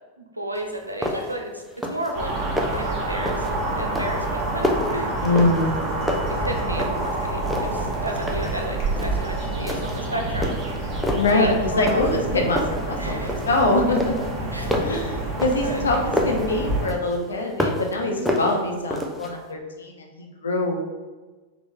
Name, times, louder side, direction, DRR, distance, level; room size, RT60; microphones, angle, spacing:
voice 1, 0.2-1.6 1.9-2.3 2.7-5.1 6.4-10.9 11.3-12.1 13.0-13.4 14.5-14.8 15.6-15.8 18.2-18.5, right 1 dB, 85° right, 2 dB, 0.5 m, -32 dB
sound 1, 0.6-0.7 1.0-1.4 1.7-2.1 2.4-2.9 3.3-3.6 3.9-5.8 6.1-7.1 7.5-8.6 9.0-9.3 9.7-10.1 10.4-11.4 11.9-12.3 12.6-13.6 14.0-16.5 16.9-17.9 18.3-19.3, left 1 dB, ahead, 0.5 m, -28 dB
sound 2, 2.1-16.9, right 2 dB, 30° right, 1.1 m, -28 dB
voice 2, 5.2-5.8 11.1-14.5 14.8-20.8, left 2 dB, 70° left, 2 dB, 0.6 m, -24 dB
sound 3, 5.8-6.8 8.5-8.8 9.4-10.1, left 1 dB, 40° left, 0.9 m, -43 dB
3.7 x 2.4 x 3.5 m, 1.3 s
figure-of-eight pair, 90°, 0 cm